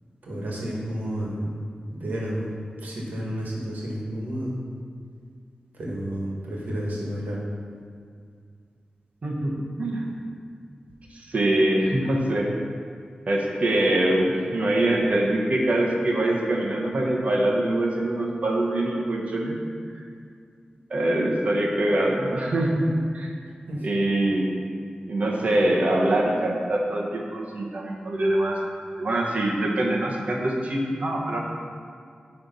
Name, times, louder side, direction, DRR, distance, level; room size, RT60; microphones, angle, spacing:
voice 1, 0.2-1.5 1.9-2.5 2.8-4.6 5.7-7.4 23.7-23.8, equal, 85° right, -4 dB, 1.7 m, -31 dB
voice 2, 9.2-9.5 9.8-10.0 11.1-12.5 13.3-19.6 19.9-20.0 20.9-23.3 23.8-24.5 25.1-28.6 29.0-31.4, right 1 dB, 55° right, -1 dB, 1.2 m, -24 dB
10.0 x 3.4 x 5.4 m, 2.2 s
wide cardioid pair, 105°, 3 cm